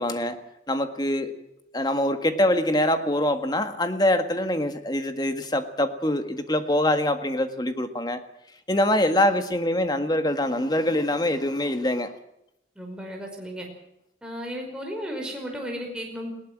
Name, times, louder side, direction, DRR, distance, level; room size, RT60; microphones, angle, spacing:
voice 1, 0.0-1.4 1.7-8.2 8.7-12.1, left 1 dB, 25° left, 8 dB, 1.8 m, -24 dB
voice 2, 12.7-13.7 14.2-16.3, equal, 5° right, 0 dB, 5.2 m, -34 dB
20.0 x 18.5 x 7.6 m, 0.82 s
head